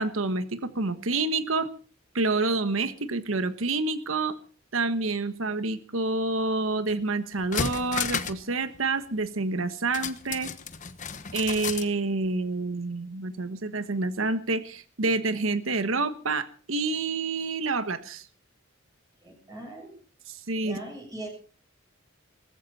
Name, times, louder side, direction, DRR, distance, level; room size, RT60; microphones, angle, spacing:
voice 1, 0.0-1.7 2.1-4.4 4.7-10.5 11.3-18.3 20.5-20.8, right 3 dB, 85° right, 12 dB, 1.4 m, -28 dB
sound 1, 6.9-7.0 7.3-8.5 8.7-8.8 9.9-11.9 12.2-12.3, left 6 dB, 40° left, 1.1 m, -32 dB
voice 2, 19.2-20.0 20.6-21.3, right 1 dB, 20° right, 0 dB, 6.9 m, -40 dB
19.5 x 15.0 x 4.3 m, 0.40 s
head